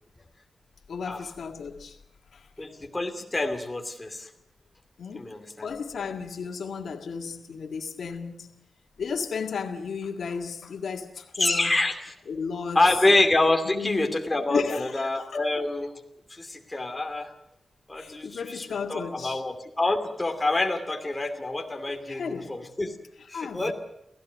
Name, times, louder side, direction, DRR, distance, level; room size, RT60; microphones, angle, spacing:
voice 1, 0.9-2.0 2.3-2.5 5.0-5.3 5.6-8.5 9.0-11.7 12.3-12.8 13.7-14.2 14.5-15.4 18.0-19.4 22.2-22.6 23.3-23.7, left 5 dB, 85° left, 1.9 m, -34 dB
voice 2, 2.6-4.3 5.1-5.7 11.4-12.1 12.7-16.0 16.3-17.3 17.9-22.9 23.3-23.7, left 2 dB, 15° left, 2.6 m, -26 dB
29.0 x 16.5 x 6.3 m
wide cardioid pair, 170°, 0 cm